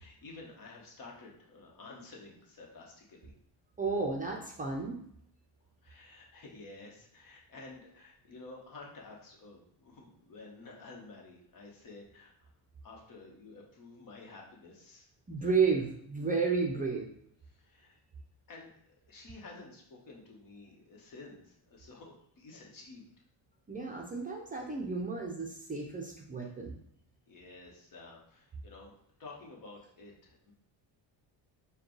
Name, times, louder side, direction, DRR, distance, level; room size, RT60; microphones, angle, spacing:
voice 1, 0.0-3.3 5.8-12.5 12.8-15.1 17.5-18.0 18.5-23.1 27.3-28.9 29.2-30.5, left 3 dB, 50° left, -1 dB, 1.2 m, -51 dB
voice 2, 3.8-5.0 15.3-17.1 23.7-26.8, right 4 dB, 20° right, -1 dB, 0.5 m, -32 dB
4.8 x 2.3 x 3.1 m, 0.70 s
cardioid pair, 100°, 44 cm